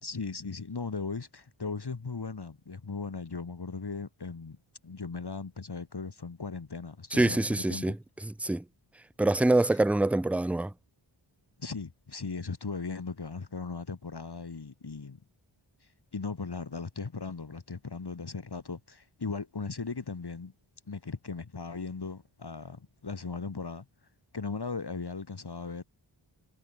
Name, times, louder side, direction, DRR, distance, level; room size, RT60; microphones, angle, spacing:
voice 1, 0.0-4.6 4.8-7.9 9.7-9.8 11.6-15.2 15.8-20.5 20.9-23.8 24.3-25.8, left 4 dB, 50° left, 2.8 m, -38 dB
voice 2, 7.1-8.0 8.4-8.6 9.2-10.7, right 2 dB, 5° right, 0.4 m, -25 dB
wide cardioid pair, 75°, 50 cm